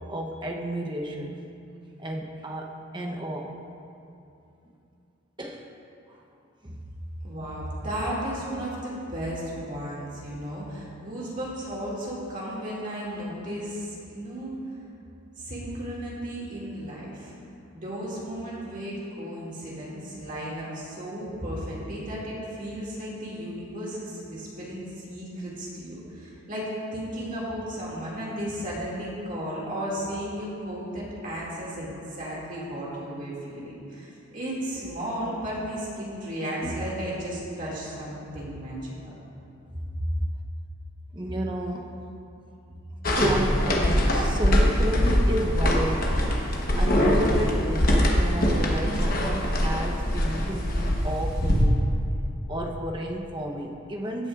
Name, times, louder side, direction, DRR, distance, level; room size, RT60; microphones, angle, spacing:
voice 1, 0.1-1.4 2.0-3.5 5.4-5.7 6.1-6.2 6.6-6.8 36.6-36.8 38.1-38.2 41.1-41.9 43.1-46.1 46.7-51.8 52.5-54.3, right 1 dB, 20° right, 1 dB, 0.7 m, -32 dB
voice 2, 7.2-14.6 15.4-17.3 17.7-38.9 40.0-40.1, equal, 40° right, -6 dB, 2.1 m, -34 dB
sound 1, 43.0-51.6, equal, 45° left, 1.0 m, -23 dB
15.5 x 8.6 x 2.4 m, 2.7 s
head